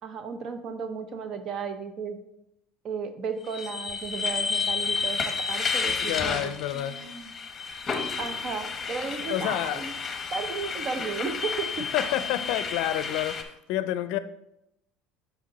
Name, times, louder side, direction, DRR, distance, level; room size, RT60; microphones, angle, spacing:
voice 1, 0.0-2.2 2.8-7.3 8.2-9.9 10.3-11.9, right 5 dB, 45° right, 0.8 m, -34 dB
sound 1, 3.5-13.4, left 5 dB, 30° left, 0.9 m, -31 dB
voice 2, 6.0-7.0 9.3-9.9 10.9-11.1 11.9-14.2, left 13 dB, 70° left, 0.4 m, -29 dB
6.3 x 5.2 x 4.1 m
supercardioid pair, 110°, 0 cm